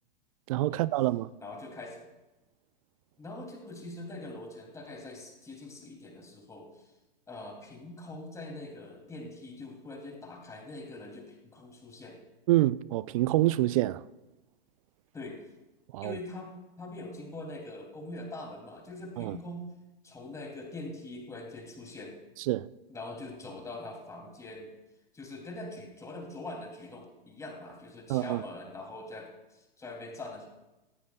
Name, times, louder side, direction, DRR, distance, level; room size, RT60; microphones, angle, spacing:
voice 1, 0.5-1.3 12.5-14.0 15.9-16.2 19.2-19.4 22.5-22.7 28.1-28.4, right 16 dB, 35° right, 0.5 m, -26 dB
voice 2, 1.4-2.0 3.2-6.9 7.3-12.2 15.1-15.4 16.0-19.7 20.0-22.2 22.9-24.7 25.1-30.5, left 2 dB, 10° left, 2.8 m, -43 dB
18.0 x 15.5 x 2.3 m
figure-of-eight pair, 110°, 29 cm